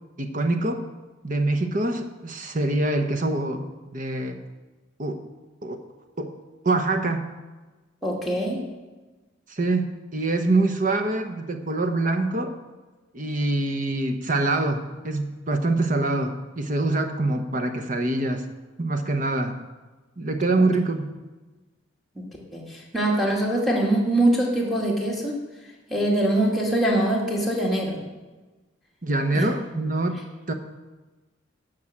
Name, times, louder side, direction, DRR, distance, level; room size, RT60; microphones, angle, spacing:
voice 1, 0.2-0.8 1.2-4.4 5.0-5.2 5.6-5.8 6.2-6.3 6.6-7.3 9.5-12.5 13.1-18.4 18.8-19.6 20.2-21.1 29.0-30.2 30.5-30.6, right 2 dB, 45° right, 7 dB, 1.0 m, -25 dB
voice 2, 8.0-8.6 22.2-25.3 25.9-28.0 29.3-29.5, right 1 dB, ahead, -4 dB, 2.1 m, -23 dB
11.0 x 6.5 x 7.3 m, 1.2 s
head